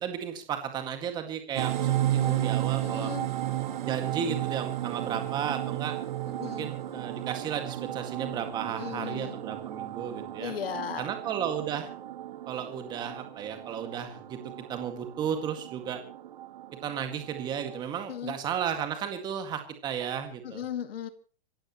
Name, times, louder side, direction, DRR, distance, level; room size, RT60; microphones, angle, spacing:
voice 1, 0.0-3.1 3.8-6.0 6.4-10.5 11.0-11.9 12.5-14.4 14.7-16.0 16.8-20.6, right 8 dB, 15° right, 6 dB, 2.0 m, -34 dB
sound 1, 1.6-17.8, right 13 dB, 50° right, 1.4 m, -34 dB
voice 2, 2.2-2.5 2.8-3.3 6.4-6.7 8.8-9.4 10.4-11.1 18.1-18.4 20.4-21.1, left 9 dB, 65° left, 9 dB, 2.3 m, -37 dB
26.0 x 14.5 x 3.1 m, 0.40 s
hypercardioid pair, 170°, 31 cm